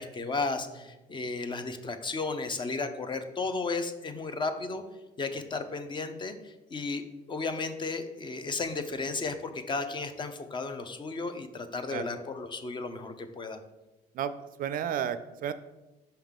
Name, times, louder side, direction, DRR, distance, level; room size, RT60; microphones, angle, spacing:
voice 1, 0.0-4.8 5.2-7.0 7.3-13.6, left 3 dB, 30° left, 8 dB, 0.6 m, -34 dB
voice 2, 14.6-15.5, right 9 dB, 55° right, 12 dB, 0.4 m, -32 dB
5.6 x 5.5 x 3.6 m, 1.0 s
cardioid pair, 110°, 17 cm